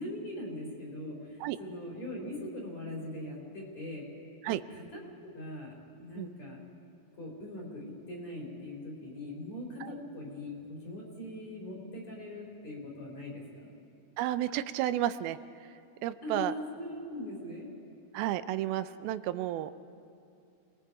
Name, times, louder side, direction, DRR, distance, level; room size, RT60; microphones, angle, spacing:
voice 1, 0.0-4.1 4.4-6.6 7.1-13.7 16.2-17.7, left 1 dB, 50° left, -2 dB, 5.4 m, -41 dB
voice 2, 14.2-15.4 16.0-16.5 18.1-19.7, right 13 dB, 85° right, 13 dB, 2.5 m, -31 dB
29.0 x 20.5 x 4.9 m, 2.7 s
omnidirectional pair, 4.2 m